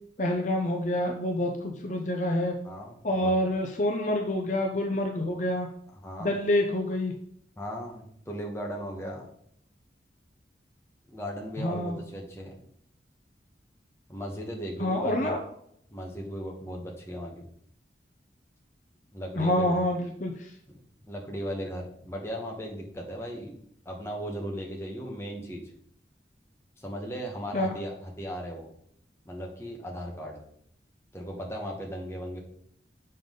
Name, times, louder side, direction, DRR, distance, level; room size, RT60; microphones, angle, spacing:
voice 1, 0.2-2.6 3.0-5.7 6.2-7.1 11.6-12.0 14.8-15.4 19.4-20.5 27.5-27.7, left 1 dB, 45° left, 2 dB, 0.8 m, -27 dB
voice 2, 2.6-3.3 6.0-6.3 7.6-9.3 11.1-12.6 14.1-15.3 15.9-17.4 19.1-19.7 20.7-20.8 21.1-23.6 23.8-25.6 26.8-28.7 29.2-30.4 31.1-32.4, equal, 15° left, 0 dB, 1.2 m, -37 dB
7.1 x 5.4 x 3.8 m, 0.69 s
head